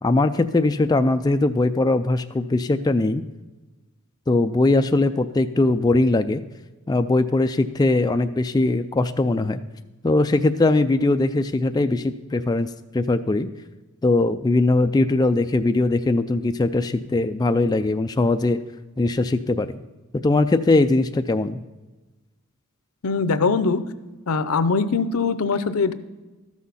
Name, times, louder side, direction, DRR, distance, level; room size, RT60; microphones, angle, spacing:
voice 1, 0.0-3.2 4.3-6.4 6.9-9.6 10.0-13.5 14.0-18.6 19.0-19.8 20.2-21.6, left 2 dB, 20° left, 8 dB, 0.3 m, -20 dB
voice 2, 23.0-23.8 24.3-25.9, left 4 dB, 85° left, 13 dB, 0.6 m, -22 dB
13.0 x 6.3 x 5.5 m, 1.2 s
head